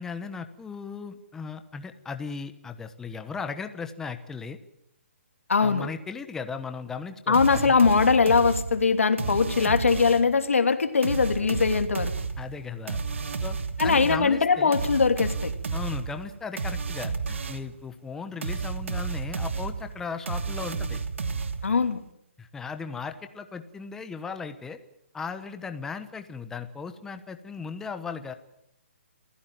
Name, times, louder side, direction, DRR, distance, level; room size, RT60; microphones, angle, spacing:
voice 1, 0.0-4.6 5.6-7.8 9.2-9.4 12.4-13.0 13.4-13.6 13.8-14.7 15.7-21.0 22.4-24.8 25.1-28.3, left 5 dB, 5° left, 9 dB, 1.1 m, -37 dB
voice 2, 5.5-5.9 7.3-12.1 13.8-15.5 21.6-22.0, left 5 dB, 85° left, 8 dB, 3.0 m, -21 dB
sound 1, 7.3-10.4 11.0-17.8 18.4-21.9, right 4 dB, 70° right, 2.6 m, -32 dB
28.5 x 16.0 x 9.1 m, 0.76 s
hypercardioid pair, 160°, 7 cm